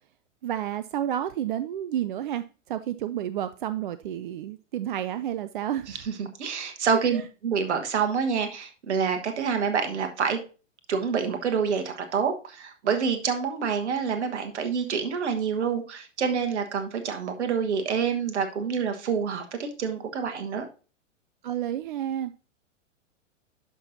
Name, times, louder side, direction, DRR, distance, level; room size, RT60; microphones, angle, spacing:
voice 1, 0.4-6.0 7.1-7.2 21.4-22.3, right 11 dB, 45° right, 0.4 m, -30 dB
voice 2, 5.9-10.4 10.9-20.6, right 6 dB, 60° right, 1.4 m, -27 dB
11.0 x 5.9 x 2.7 m
figure-of-eight pair, 105°, 38 cm